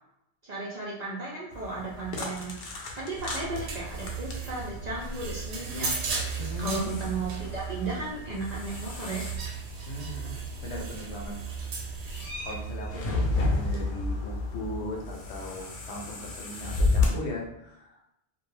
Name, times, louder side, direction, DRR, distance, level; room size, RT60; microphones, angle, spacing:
voice 1, 0.4-2.6 2.9-5.9 6.6-9.3, right 3 dB, 55° right, -6 dB, 0.4 m, -35 dB
sound 1, 1.5-17.1, left 3 dB, 55° left, 0.6 m, -33 dB
sound 2, 3.2-13.9, right 5 dB, 85° right, 0.9 m, -36 dB
voice 2, 6.4-6.8 9.9-11.4 12.4-18.0, left 1 dB, 80° left, -1 dB, 0.9 m, -38 dB
2.2 x 2.1 x 3.1 m, 0.81 s
omnidirectional pair, 1.2 m